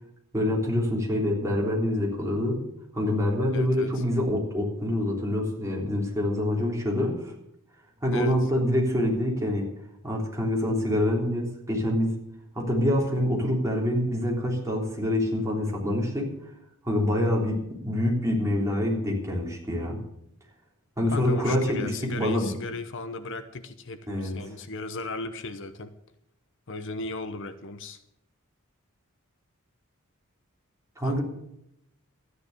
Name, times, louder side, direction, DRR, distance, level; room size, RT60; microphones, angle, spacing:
voice 1, 0.3-2.6 2.9-7.3 8.0-9.7 10.0-12.2 12.6-16.3 16.9-20.0 21.0-22.5 24.1-24.3 31.0-31.2, left 1 dB, 15° right, -2 dB, 3.6 m, -26 dB
voice 2, 3.5-4.0 8.1-8.3 21.1-25.9 26.7-28.0 31.0-31.2, left 3 dB, 60° left, 10 dB, 0.9 m, -36 dB
13.5 x 9.8 x 6.7 m, 0.80 s
head